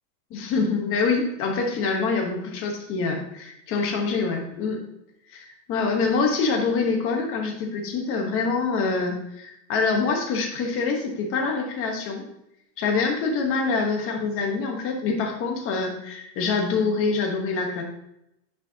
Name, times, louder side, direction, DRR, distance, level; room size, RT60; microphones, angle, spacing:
voice 1, 0.3-4.8 5.3-12.2 12.8-17.8, left 4 dB, 25° left, 2 dB, 1.1 m, -25 dB
10.0 x 5.0 x 2.8 m, 0.81 s
supercardioid pair, 160°, 49 cm